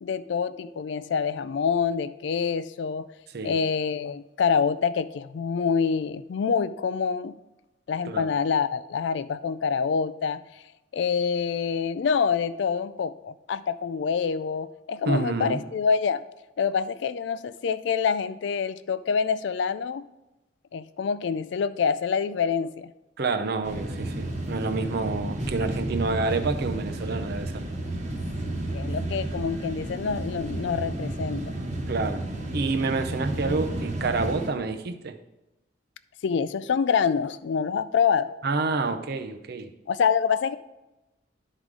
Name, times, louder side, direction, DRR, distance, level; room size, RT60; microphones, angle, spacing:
voice 1, 0.0-3.0 3.4-7.4 7.9-10.4 10.9-16.2 16.6-20.1 20.7-22.9 28.6-31.4 36.2-38.3 39.9-40.5, left 6 dB, 60° left, 15 dB, 0.3 m, -26 dB
voice 2, 15.1-15.6 23.2-27.6 31.9-32.2 32.5-35.2 38.4-39.7, right 3 dB, 55° right, 8 dB, 0.6 m, -28 dB
sound 1, 23.6-34.5, right 1 dB, 35° right, 1.1 m, -32 dB
11.0 x 3.8 x 4.8 m, 0.99 s
head